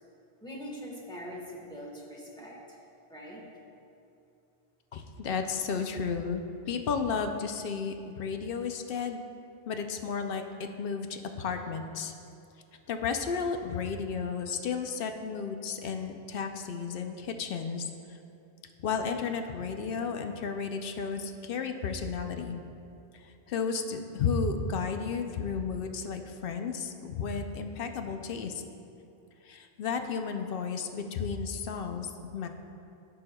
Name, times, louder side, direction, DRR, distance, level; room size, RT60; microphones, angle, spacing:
voice 1, 0.4-2.8 3.1-3.4, equal, 5° left, -4 dB, 1.2 m, -42 dB
voice 2, 4.9-9.2 9.7-12.1 12.9-18.2 18.8-22.6 23.1-28.6 29.4-32.5, left 5 dB, 65° left, 6 dB, 0.7 m, -33 dB
14.5 x 5.5 x 2.2 m, 2.7 s
omnidirectional pair, 1.1 m